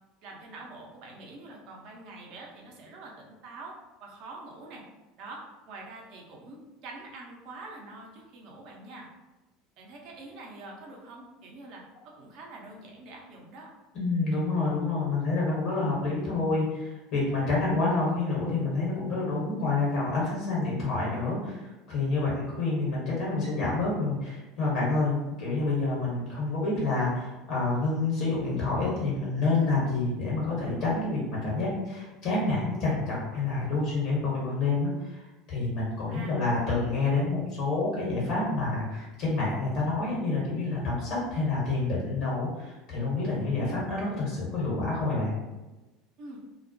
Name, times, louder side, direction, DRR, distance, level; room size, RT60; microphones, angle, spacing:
voice 1, 0.2-4.8 5.2-9.1 9.8-13.7 36.1-36.5 46.2-46.4, right 2 dB, 55° right, -1 dB, 0.6 m, -45 dB
voice 2, 13.9-45.4, left 3 dB, 55° left, -6 dB, 1.0 m, -28 dB
2.3 x 2.1 x 2.6 m, 1.1 s
hypercardioid pair, 75°, 0 cm